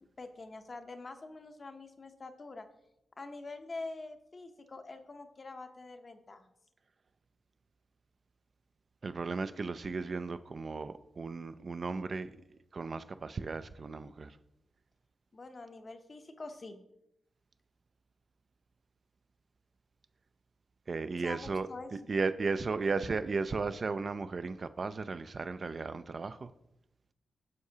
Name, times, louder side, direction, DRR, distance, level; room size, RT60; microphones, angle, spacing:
voice 1, 0.2-2.7 3.2-6.4 15.3-16.8 21.2-21.9, left 3 dB, 35° left, 7 dB, 0.7 m, -45 dB
voice 2, 9.0-12.3 12.7-14.4 20.9-26.5, right 4 dB, 40° right, 12 dB, 0.3 m, -35 dB
9.4 x 6.4 x 2.8 m, 0.86 s
wide cardioid pair, 110°, 0 cm